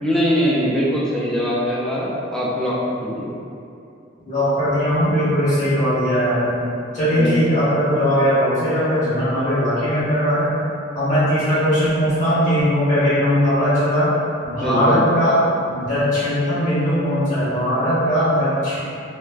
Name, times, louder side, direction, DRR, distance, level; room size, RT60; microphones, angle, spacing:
voice 1, 0.0-3.4 7.2-7.4 14.6-15.0, equal, 5° left, -7 dB, 0.3 m, -22 dB
voice 2, 4.3-6.7 6.9-10.5 10.9-14.1 14.4-15.4 15.7-18.8, equal, 40° left, -12 dB, 1.1 m, -19 dB
3.2 x 2.1 x 2.3 m, 2.6 s
head